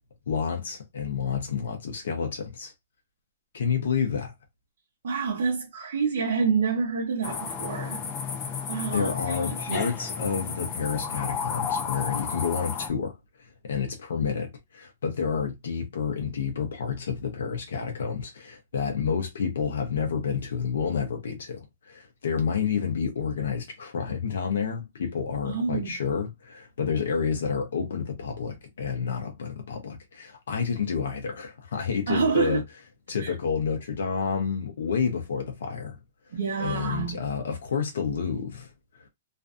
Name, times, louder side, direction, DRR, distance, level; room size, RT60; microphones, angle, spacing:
voice 1, 0.3-2.7 3.5-4.3 8.9-32.6 33.1-36.0 36.6-39.1, left 6 dB, 75° left, 0.6 m, -29 dB
voice 2, 5.0-8.0 8.7-9.4 9.7-9.9 25.4-26.0 32.1-32.6 33.2-33.3 36.3-37.2, right 5 dB, 60° right, 0.7 m, -27 dB
sound 1, 7.2-12.9, left 6 dB, 20° left, 0.4 m, -32 dB
2.5 x 2.3 x 2.4 m
hypercardioid pair, 180°, 0 cm